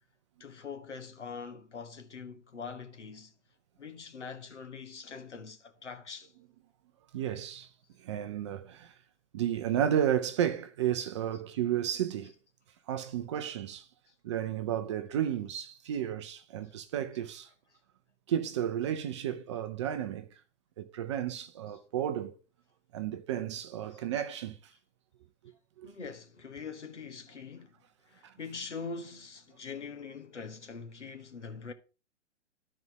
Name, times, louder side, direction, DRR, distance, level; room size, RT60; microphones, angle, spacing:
voice 1, 0.4-3.3 3.8-6.3 23.9-24.0 25.8-31.7, left 5 dB, 70° left, 1.5 m, -43 dB
voice 2, 7.1-7.7 8.0-8.9 9.3-12.3 12.9-13.9 14.2-17.5 18.3-20.3 20.8-22.3 22.9-24.6 25.8-25.9 28.2-28.3, right 10 dB, 25° right, 0.6 m, -32 dB
12.0 x 4.3 x 4.9 m
figure-of-eight pair, 120°, 36 cm